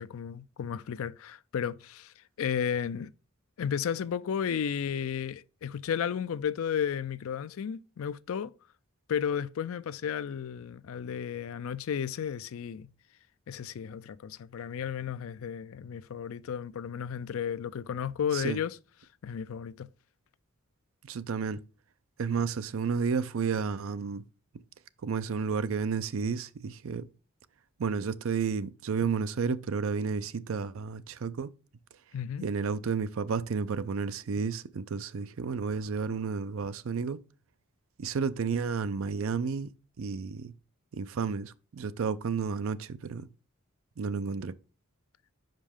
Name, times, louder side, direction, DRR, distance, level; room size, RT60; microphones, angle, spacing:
voice 1, 0.0-3.1 3.6-8.5 9.1-12.9 13.5-18.8 19.2-19.9 32.1-32.4, left 8 dB, 70° left, 0.4 m, -33 dB
voice 2, 21.0-21.6 22.2-24.2 25.0-27.1 27.8-31.5 32.4-37.2 38.0-39.7 40.0-40.5 40.9-43.3 44.0-44.5, right 5 dB, 70° right, 0.4 m, -31 dB
5.2 x 5.2 x 3.6 m
head